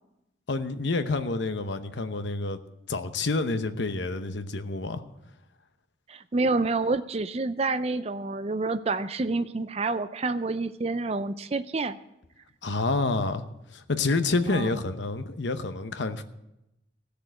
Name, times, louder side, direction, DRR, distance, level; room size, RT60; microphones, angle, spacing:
voice 1, 0.5-2.6 2.9-5.0 12.6-13.4 13.7-16.2, left 3 dB, 70° left, 9 dB, 0.9 m, -28 dB
voice 2, 6.1-12.0 14.5-14.7, right 3 dB, 35° right, 13 dB, 0.4 m, -28 dB
16.0 x 6.8 x 7.7 m, 0.90 s
head